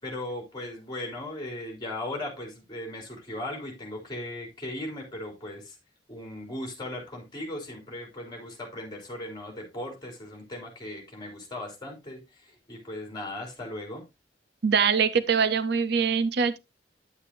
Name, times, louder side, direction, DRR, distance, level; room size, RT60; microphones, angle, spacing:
voice 1, 0.0-5.8 6.1-14.0, left 1 dB, 25° left, 3.8 m, -37 dB
voice 2, 14.6-16.6, right 6 dB, 65° right, 0.7 m, -23 dB
10.0 x 8.4 x 2.6 m
head